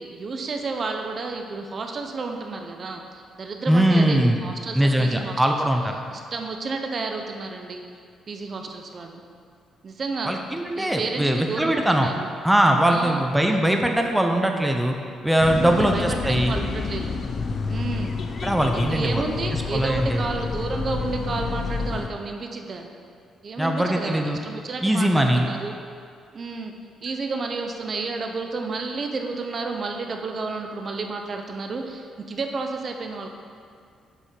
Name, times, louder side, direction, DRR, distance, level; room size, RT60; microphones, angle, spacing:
voice 1, 0.0-5.4 6.1-7.8 8.3-9.2 9.8-10.3 10.8-12.3 12.9-13.2 15.6-17.1 17.7-18.2 18.9-22.9 23.4-25.7 26.3-26.8 27.0-33.3, right 3 dB, 45° right, 4 dB, 0.6 m, -31 dB
voice 2, 3.7-4.4 4.7-5.9 10.2-12.1 12.4-14.9 15.2-16.5 18.4-19.3 19.7-20.3 23.6-24.4 24.8-25.5, right 1 dB, 5° right, 3 dB, 0.6 m, -21 dB
sound 1, 15.4-22.1, left 4 dB, 50° left, 0.5 m, -29 dB
7.2 x 4.5 x 5.1 m, 2.3 s
cardioid pair, 90°, 0 cm